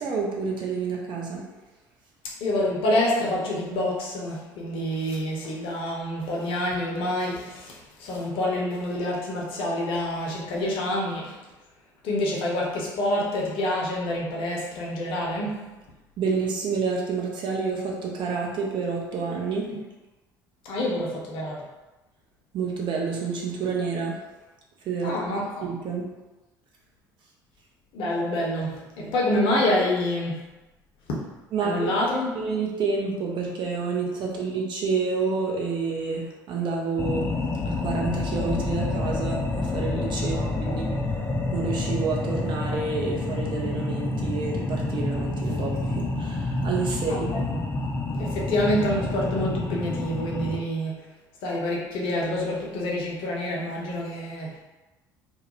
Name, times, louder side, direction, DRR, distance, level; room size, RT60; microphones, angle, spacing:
voice 1, 0.0-1.4 16.2-19.7 22.5-24.2 24.9-26.1 29.0-29.1 31.5-31.9 32.3-37.3 37.6-40.8 41.5-47.3, right 4 dB, 45° right, -2 dB, 0.6 m, -29 dB
voice 2, 2.4-11.4 12.0-15.7 20.6-21.6 25.0-25.7 27.9-30.4 31.1-31.2 31.6-32.3 40.3-40.8 47.1-47.6 48.2-51.0 51.4-54.5, left 1 dB, 55° left, -3 dB, 0.7 m, -27 dB
sound 1, 37.0-50.6, left 2 dB, 20° left, 0.4 m, -28 dB
2.3 x 2.1 x 2.9 m, 1.1 s
figure-of-eight pair, 55°, 11 cm